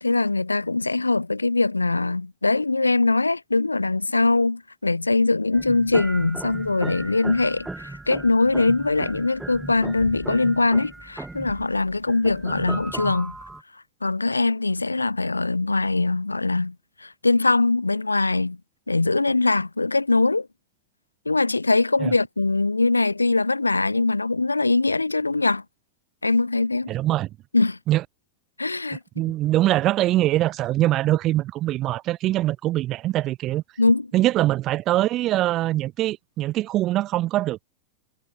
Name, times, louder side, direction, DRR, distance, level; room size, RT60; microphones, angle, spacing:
voice 1, 0.0-13.3 14.0-18.6 18.9-20.5 21.3-25.6 26.2-26.9 27.5-27.8 28.6-29.0 33.8-34.1, left 3 dB, 80° left, 0.9 m, -22 dB
sound 1, 5.5-13.6, right 2 dB, 5° right, 0.6 m, -37 dB
voice 2, 26.9-27.3 27.9-28.0 29.2-33.6 34.1-37.6, right 15 dB, 35° right, 1.2 m, -23 dB
figure-of-eight pair, 90°, 0 cm